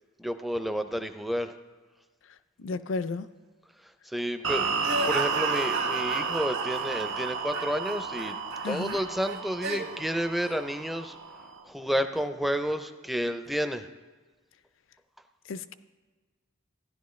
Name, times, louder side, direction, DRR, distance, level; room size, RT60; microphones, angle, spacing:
voice 1, 0.2-1.5 4.1-8.4 8.6-11.2 11.7-13.9, equal, ahead, 0.4 m, -30 dB
voice 2, 2.6-3.3 8.6-9.0 15.5-15.7, left 4 dB, 65° left, 0.4 m, -33 dB
sound 1, 4.4-11.6, right 5 dB, 90° right, 0.9 m, -32 dB
sound 2, 4.8-10.0 10.4-10.6, right 3 dB, 55° right, 1.2 m, -34 dB
15.0 x 10.5 x 3.1 m
head